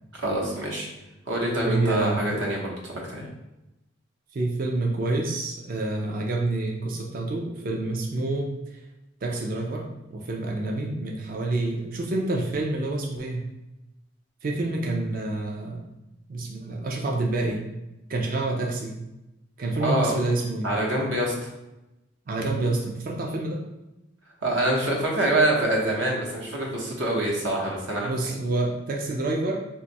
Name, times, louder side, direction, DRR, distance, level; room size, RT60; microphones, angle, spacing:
voice 1, 0.1-0.9 1.3-3.3 19.8-20.1 20.6-21.5 24.4-28.3, right 1 dB, 65° right, -2 dB, 0.8 m, -25 dB
voice 2, 1.6-2.5 4.3-8.8 9.2-13.5 14.4-15.8 16.3-17.7 18.1-19.0 19.6-20.7 22.3-23.6 28.0-29.6, right 2 dB, 45° right, 0 dB, 0.4 m, -28 dB
2.6 x 2.3 x 4.0 m, 0.94 s
head